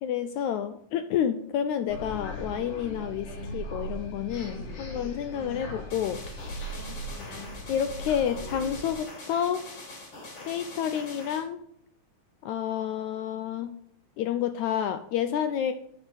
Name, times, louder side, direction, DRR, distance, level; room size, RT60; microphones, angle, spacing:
voice 1, 0.0-6.2 7.7-9.6 10.4-11.6 12.4-13.7 14.2-15.7, left 9 dB, 85° left, 10 dB, 1.7 m, -29 dB
sound 1, 1.9-8.9, equal, 65° left, 4.0 m, -38 dB
sound 2, 5.9-11.4, left 2 dB, 45° left, 5.1 m, -44 dB
11.5 x 6.0 x 7.8 m, 0.72 s
omnidirectional pair, 3.9 m